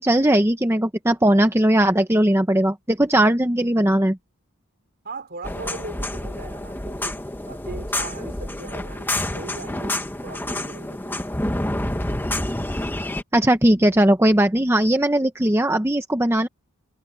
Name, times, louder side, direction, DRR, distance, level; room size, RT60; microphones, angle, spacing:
voice 1, 0.0-4.2 13.3-16.5, right 1 dB, 10° right, 0.8 m, -18 dB
voice 2, 5.0-7.2 7.5-11.2, right 3 dB, 45° right, 3.3 m, -39 dB
sound 1, 5.4-13.2, left 1 dB, 10° left, 1.1 m, -28 dB
head